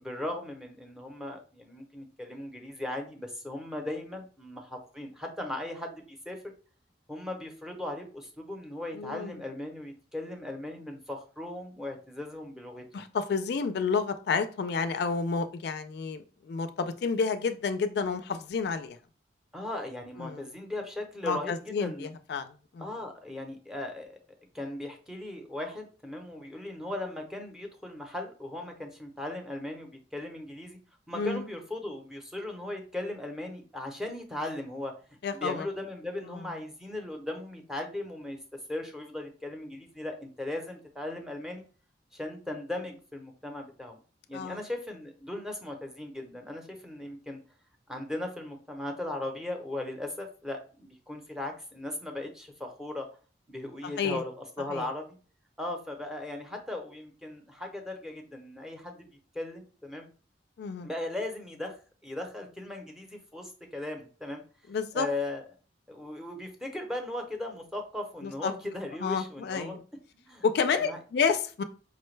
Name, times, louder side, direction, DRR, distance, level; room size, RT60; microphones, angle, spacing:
voice 1, 0.0-6.4 7.1-13.1 19.5-22.1 22.8-24.2 24.5-30.8 31.1-34.9 35.3-38.4 38.7-41.6 42.1-44.0 44.3-47.4 47.9-53.1 53.5-55.1 55.6-59.1 59.3-60.1 60.8-61.8 62.0-64.4 64.9-65.5 65.9-69.8 70.1-71.0, left 1 dB, 5° right, 2 dB, 0.6 m, -38 dB
voice 2, 8.9-9.4 12.9-19.0 20.2-20.5 21.2-22.9 31.1-31.5 35.2-35.7 36.3-36.4 44.3-44.6 53.8-54.2 54.7-54.9 60.6-60.9 64.7-65.1 68.2-68.5 69.0-69.8 70.4-71.6, left 5 dB, 65° left, 9 dB, 0.3 m, -30 dB
4.9 x 2.2 x 3.1 m, 0.37 s
head